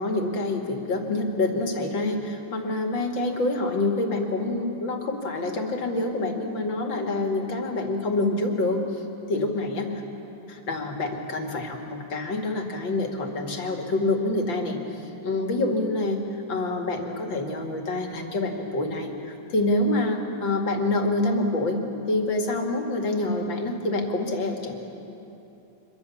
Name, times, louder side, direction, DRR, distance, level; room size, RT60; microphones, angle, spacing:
voice 1, 0.0-8.8 9.3-9.9 10.5-14.8 15.2-16.2 16.5-21.8 22.1-24.7, left 2 dB, 65° left, 3 dB, 2.8 m, -26 dB
26.0 x 22.5 x 7.1 m, 3.0 s
omnidirectional pair, 2.2 m